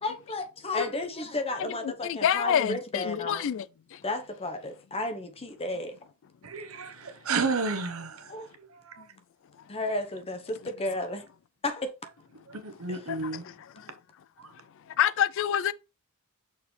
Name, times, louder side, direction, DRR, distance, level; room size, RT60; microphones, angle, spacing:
voice 1, 0.0-3.4 4.0-5.9 8.3-8.5 9.7-11.3 11.6-11.9 12.9-13.0, left 2 dB, 25° left, 1.0 m, -33 dB
voice 2, 2.0-3.7 3.9-4.0 13.1-13.2 13.4-13.9 15.0-15.7, left 9 dB, 60° left, 0.3 m, -27 dB
voice 3, 6.4-8.4 8.7-9.1 12.5-13.5 14.4-14.5, right 4 dB, 70° right, 1.0 m, -32 dB
6.2 x 4.7 x 3.3 m
head